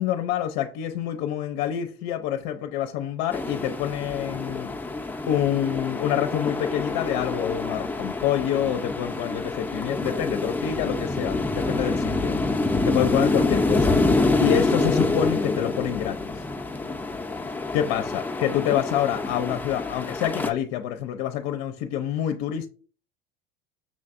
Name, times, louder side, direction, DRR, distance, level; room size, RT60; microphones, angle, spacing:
voice 1, 0.0-4.8 5.3-12.4 12.8-16.4 17.7-22.7, left 10 dB, 65° left, 0.6 m, -27 dB
sound 1, 3.3-20.5, left 2 dB, 5° left, 0.6 m, -26 dB
6.2 x 3.2 x 2.5 m
hypercardioid pair, 80°, 30 cm